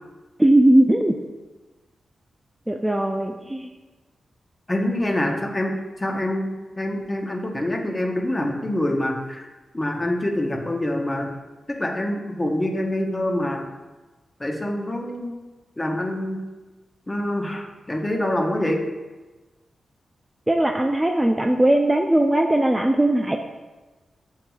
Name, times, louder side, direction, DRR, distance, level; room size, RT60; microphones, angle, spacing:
voice 1, 0.4-1.2 2.7-3.7 20.5-23.4, right 1 dB, 15° right, 3 dB, 0.3 m, -19 dB
voice 2, 4.7-11.3 11.7-13.7 14.4-15.4 15.8-16.5 17.1-18.8, left 1 dB, 25° left, 2 dB, 0.8 m, -26 dB
7.6 x 2.8 x 2.3 m, 1.2 s
cardioid pair, 60°, 0 cm